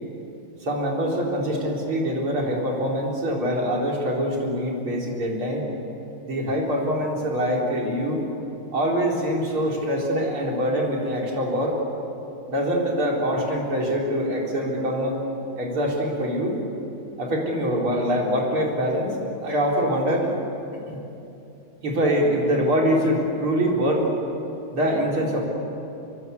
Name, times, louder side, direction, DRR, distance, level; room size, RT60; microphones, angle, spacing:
voice 1, 0.6-5.6 6.3-8.2 8.7-11.8 12.5-15.2 15.6-16.6 17.2-20.3 20.9-21.0 21.8-24.1 24.7-25.5, equal, 90° right, -2 dB, 5.1 m, -24 dB
26.0 x 22.5 x 8.3 m, 2.8 s
omnidirectional pair, 2.3 m